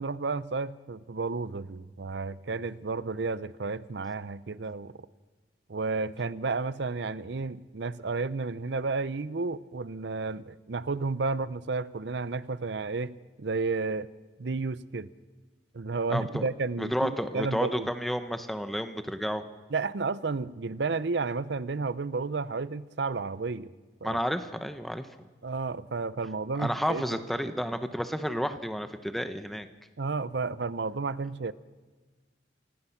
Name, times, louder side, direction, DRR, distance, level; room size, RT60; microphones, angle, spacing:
voice 1, 0.0-4.9 5.7-14.1 14.4-15.1 15.7-17.9 19.7-23.7 24.0-24.2 25.4-27.2 30.0-31.5, right 4 dB, 70° right, 16 dB, 0.6 m, -32 dB
voice 2, 16.1-16.5 16.8-19.4 24.0-25.1 26.5-29.7, equal, ahead, 8 dB, 0.9 m, -31 dB
27.0 x 18.0 x 5.9 m, 1.3 s
head